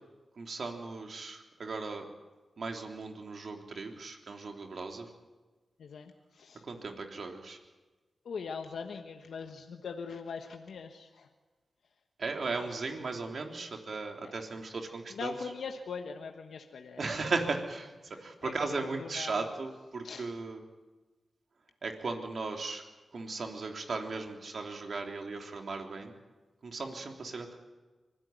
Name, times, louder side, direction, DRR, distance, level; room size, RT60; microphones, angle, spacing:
voice 1, 0.4-2.1 2.6-5.1 6.7-7.6 12.2-15.3 17.0-17.9 18.2-20.6 21.8-22.8 23.1-26.2 26.6-27.6, right 3 dB, 70° right, 3 dB, 3.4 m, -37 dB
voice 2, 5.8-6.6 8.2-11.3 12.7-13.1 14.2-14.3 15.1-17.1 18.1-19.5 20.0-20.3, left 5 dB, 85° left, 4 dB, 1.3 m, -42 dB
25.0 x 16.5 x 9.4 m, 1.3 s
cardioid pair, 45°, 0 cm